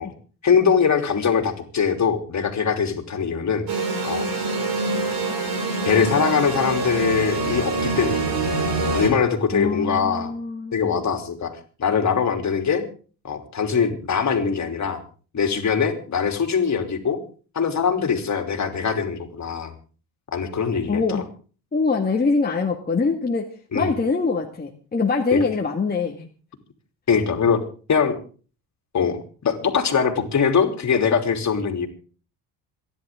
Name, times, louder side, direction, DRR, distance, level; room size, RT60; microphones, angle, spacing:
voice 1, 0.4-3.7 4.0-4.3 5.8-8.4 8.9-10.3 10.7-12.9 13.2-15.0 15.3-17.2 17.5-19.7 20.3-21.0 23.7-23.9 25.3-25.4 27.1-27.6 27.9-28.2 28.9-31.9, left 6 dB, 40° left, 6 dB, 3.3 m, -22 dB
sound 1, 3.7-9.1, right 3 dB, 60° right, 5.6 m, -25 dB
voice 2, 9.5-11.0 20.9-21.2 21.7-23.5 23.7-26.3, left 4 dB, 20° left, 1 dB, 1.9 m, -23 dB
27.0 x 11.0 x 3.8 m, 0.39 s
supercardioid pair, 85°, 42 cm